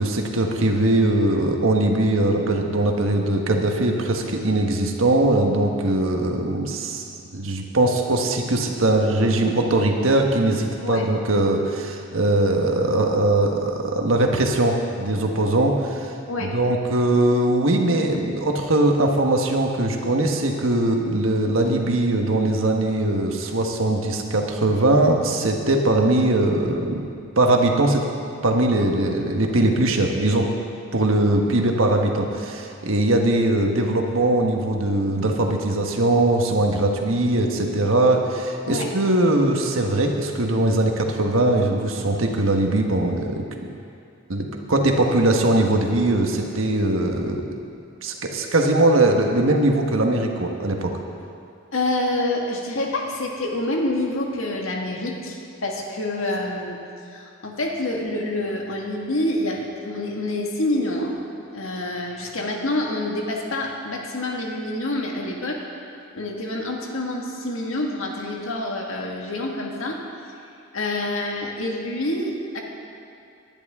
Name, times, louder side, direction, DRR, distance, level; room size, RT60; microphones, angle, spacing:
voice 1, 0.0-7.0 7.3-16.0 16.4-27.0 27.4-28.1 28.4-30.5 30.9-43.4 44.3-47.4 48.0-50.9, right 2 dB, 80° right, 2 dB, 1.4 m, -21 dB
voice 2, 51.7-56.8 57.1-61.2 61.5-65.6 66.1-70.0 70.7-72.6, left 1 dB, 80° left, 0 dB, 1.8 m, -27 dB
19.0 x 10.5 x 3.7 m, 2.5 s
head